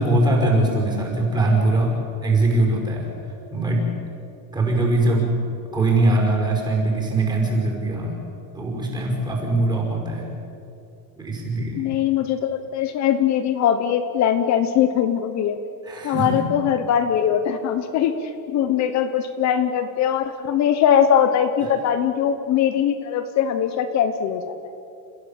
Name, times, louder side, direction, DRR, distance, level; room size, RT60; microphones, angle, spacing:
voice 1, 0.0-3.1 3.5-3.9 4.5-5.3 5.7-8.2 8.5-10.3 11.2-11.8 15.8-16.4, right 2 dB, 10° right, -1 dB, 5.4 m, -21 dB
voice 2, 11.7-15.6 16.0-24.5, left 9 dB, 35° left, 9 dB, 1.1 m, -21 dB
30.0 x 15.5 x 8.9 m, 2.7 s
cardioid pair, 165°, 49 cm